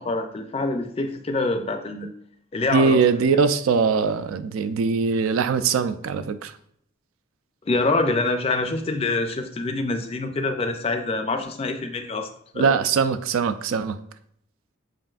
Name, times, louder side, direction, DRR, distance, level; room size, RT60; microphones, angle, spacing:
voice 1, 0.0-2.1 2.5-3.0 7.7-12.3 12.5-12.8, left 3 dB, 30° left, 0.4 m, -25 dB
voice 2, 2.7-6.5 12.6-14.0, right 5 dB, 85° right, 0.3 m, -21 dB
7.5 x 2.6 x 2.3 m
head